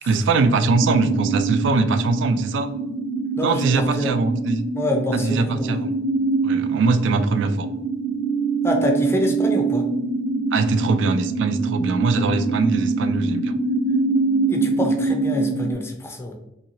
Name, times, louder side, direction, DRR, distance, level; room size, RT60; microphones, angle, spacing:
voice 1, 0.0-2.7 3.4-4.6 5.1-5.9 6.4-7.7 10.5-13.6, right 3 dB, 75° right, 10 dB, 0.3 m, -21 dB
sound 1, 0.7-15.7, right 3 dB, 60° left, 0.5 m, -24 dB
voice 2, 3.4-4.1 4.7-5.8 8.6-9.9 14.5-16.3, left 2 dB, 15° left, 3 dB, 0.4 m, -26 dB
2.9 x 2.8 x 2.7 m, 0.88 s
head